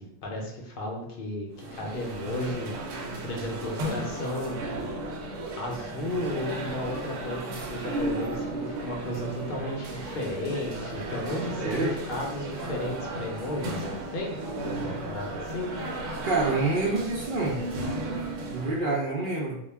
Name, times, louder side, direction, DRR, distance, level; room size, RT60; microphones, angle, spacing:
voice 1, 0.0-2.7 3.2-4.6 5.5-14.4 14.8-15.7, left 1 dB, 55° left, 0 dB, 0.7 m, -34 dB
sound 1, 1.5-18.8, right 1 dB, 80° right, 0.9 m, -34 dB
voice 2, 11.6-12.0 16.2-17.6 18.5-19.6, right 3 dB, 60° right, -2 dB, 0.6 m, -27 dB
2.2 x 2.1 x 3.3 m, 0.76 s
omnidirectional pair, 1.3 m